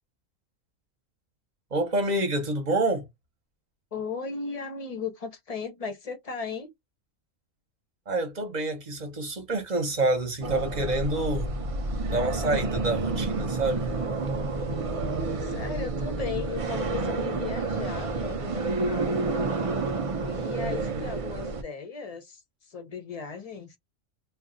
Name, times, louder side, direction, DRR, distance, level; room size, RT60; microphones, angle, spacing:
voice 1, 1.7-3.1 8.1-11.5 12.1-13.9 20.4-21.1, right 2 dB, 40° right, 0.8 m, -28 dB
voice 2, 3.9-6.7 15.4-19.3 20.2-23.8, left 5 dB, 40° left, 0.5 m, -36 dB
sound 1, 10.4-21.6, right 3 dB, 65° right, 0.3 m, -29 dB
2.4 x 2.3 x 3.7 m
omnidirectional pair, 1.3 m